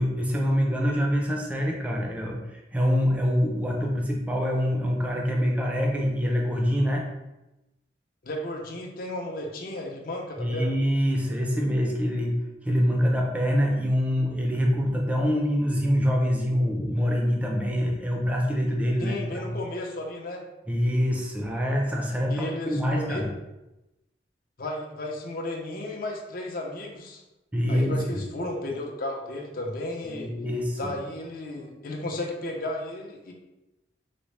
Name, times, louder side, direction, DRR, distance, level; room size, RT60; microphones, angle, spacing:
voice 1, 0.0-7.1 10.4-12.3 12.6-19.5 20.7-23.3 27.5-28.2 30.0-30.9, equal, 10° right, 0 dB, 0.4 m, -25 dB
voice 2, 8.2-10.8 19.0-20.4 22.3-23.2 24.6-27.2 27.7-30.3 30.8-33.3, left 1 dB, 55° left, 1 dB, 0.6 m, -34 dB
3.9 x 2.0 x 3.2 m, 0.96 s
head